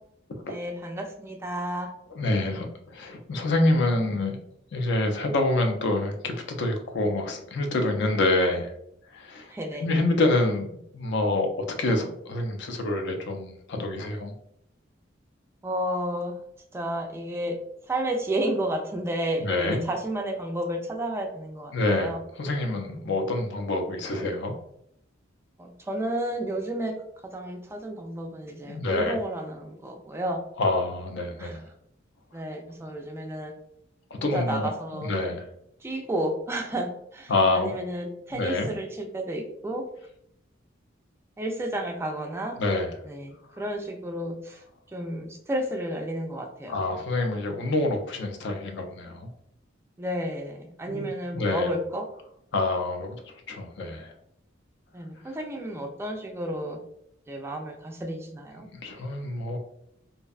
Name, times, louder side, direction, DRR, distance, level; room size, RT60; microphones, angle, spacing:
voice 1, 0.5-1.9 9.5-9.9 15.6-16.4 16.7-17.6 17.9-22.2 25.6-26.9 27.3-30.4 31.4-31.6 32.3-33.5 34.2-35.1 35.8-39.8 41.4-42.6 43.1-44.6 44.9-46.8 50.0-52.0 54.9-56.8 57.3-58.7, right 1 dB, 15° right, 3 dB, 0.3 m, -32 dB
voice 2, 2.1-4.4 4.7-8.7 9.1-9.5 9.8-10.7 10.9-14.3 19.4-19.8 21.7-24.5 28.7-29.2 30.6-31.6 34.1-35.5 37.3-37.7 38.3-38.7 42.6-42.9 46.7-49.3 50.9-51.7 52.5-54.1 55.3-55.4 58.6-59.6, left 2 dB, 65° left, 4 dB, 0.4 m, -27 dB
2.6 x 2.1 x 2.3 m, 0.73 s
head